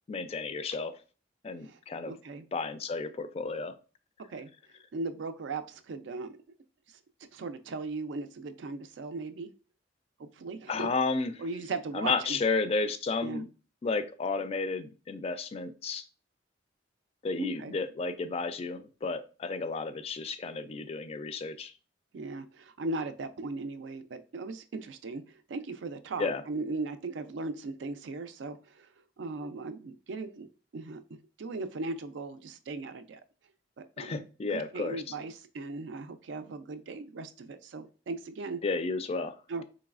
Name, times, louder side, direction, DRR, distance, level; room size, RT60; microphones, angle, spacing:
voice 1, 0.1-1.0 1.4-2.1 2.5-3.8 10.7-11.3 11.9-13.5 13.8-16.1 17.2-21.7 26.2-26.4 34.0-35.0 38.6-39.4, left 4 dB, 35° left, 11 dB, 0.3 m, -32 dB
voice 2, 2.0-2.5 4.3-4.5 4.9-6.4 7.3-9.5 10.2-10.9 11.4-12.4 13.2-13.5 17.4-17.8 22.1-28.9 29.2-33.2 33.8-34.2 34.5-38.6 39.5-39.6, right 3 dB, 80° right, 10 dB, 0.4 m, -38 dB
3.9 x 3.0 x 2.4 m, 0.36 s
head